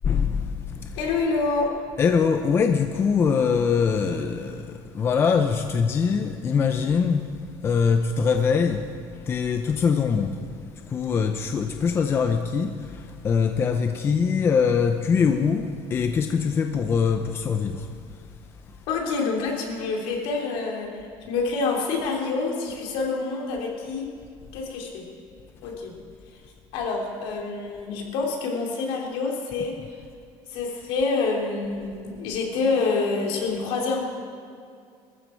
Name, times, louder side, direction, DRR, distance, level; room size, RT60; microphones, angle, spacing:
voice 1, 0.0-1.1 2.0-7.2 7.6-8.8 9.3-10.4 10.9-12.7 13.2-17.9, left 6 dB, 25° left, 6 dB, 0.6 m, -23 dB
voice 2, 1.0-1.7 18.9-24.1 24.5-25.1 25.6-25.9 26.7-30.0 30.5-34.0, left 4 dB, 70° left, 0 dB, 3.3 m, -27 dB
21.0 x 14.0 x 4.5 m, 2.3 s
cardioid pair, 170°, 10 cm